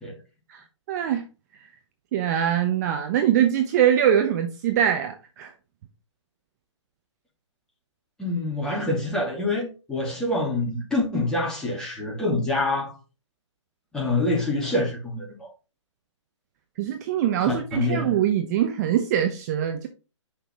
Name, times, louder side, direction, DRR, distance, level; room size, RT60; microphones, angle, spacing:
voice 1, 0.5-1.2 2.1-5.5 16.8-19.9, right 10 dB, 35° right, 0.7 m, -23 dB
voice 2, 8.2-12.9 13.9-15.5 17.4-18.1, left 2 dB, 5° left, 2.4 m, -26 dB
5.8 x 5.5 x 3.7 m
hypercardioid pair, 140°, 16 cm